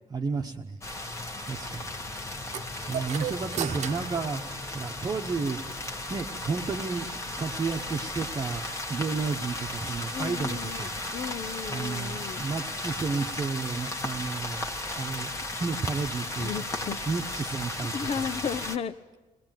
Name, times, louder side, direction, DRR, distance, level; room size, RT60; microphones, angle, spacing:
voice 1, 0.1-0.8 1.5-1.9 2.9-5.6 6.1-7.1 7.4-10.9 11.7-14.7 14.9-15.3 15.6-16.5 17.1-18.3, right 4 dB, 25° right, 2 dB, 1.1 m, -32 dB
sound 1, 0.8-18.8, left 2 dB, 20° left, 1.7 m, -35 dB
sound 2, 2.5-5.2, right 9 dB, 55° right, 1.0 m, -36 dB
voice 2, 10.1-12.4 16.4-17.0 17.9-18.9, left 7 dB, 45° left, 13 dB, 0.8 m, -34 dB
22.0 x 20.0 x 9.1 m, 1.2 s
cardioid pair, 155°, 14 cm